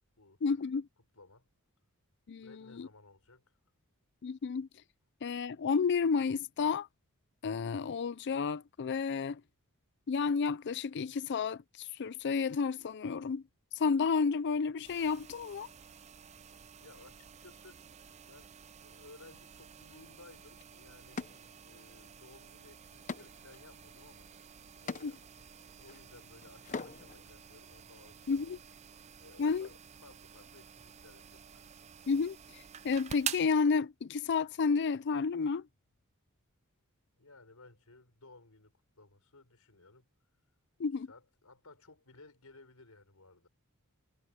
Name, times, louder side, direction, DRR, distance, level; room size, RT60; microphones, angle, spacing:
voice 1, 0.4-0.9 2.3-2.9 4.2-4.7 5.2-6.9 7.4-9.4 10.1-13.4 13.7-15.7 25.0-25.1 28.3-28.6 29.4-29.7 32.1-35.7 40.8-41.1, left 5 dB, 50° left, 0.4 m, -31 dB
voice 2, 1.1-1.5 2.4-3.4 16.8-18.0 18.2-21.2 21.6-24.3 24.8-25.2 25.6-28.6 29.2-31.7 37.2-40.1 40.8-43.5, left 3 dB, 80° left, 5.0 m, -58 dB
sound 1, 14.8-33.5, right 8 dB, 30° right, 0.5 m, -49 dB
sound 2, 20.4-20.5 21.2-22.1 22.4-27.2, left 4 dB, 35° left, 0.8 m, -45 dB
head